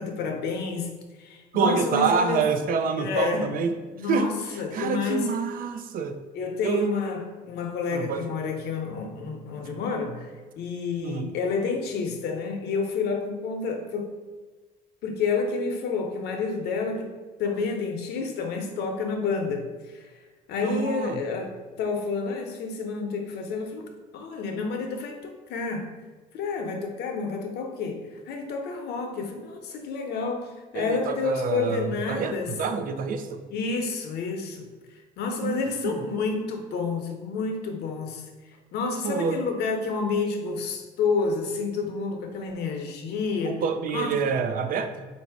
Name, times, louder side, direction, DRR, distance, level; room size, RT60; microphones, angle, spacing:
voice 1, 0.0-2.5 3.0-3.6 3.9-5.4 6.3-14.1 15.0-20.1 20.5-21.5 21.8-26.0 26.3-32.5 33.5-34.7 35.2-38.2 38.7-43.6 43.9-44.1, left 4 dB, 75° left, 4 dB, 0.8 m, -29 dB
voice 2, 1.5-3.7 4.1-4.3 4.7-6.2 6.6-6.9 7.9-8.2 11.0-11.3 20.6-21.2 30.7-33.4 35.4-36.0 39.0-39.4 43.4-45.1, right 5 dB, 55° right, 8 dB, 0.5 m, -27 dB
4.0 x 2.7 x 4.7 m, 1.3 s
cardioid pair, 110°, 17 cm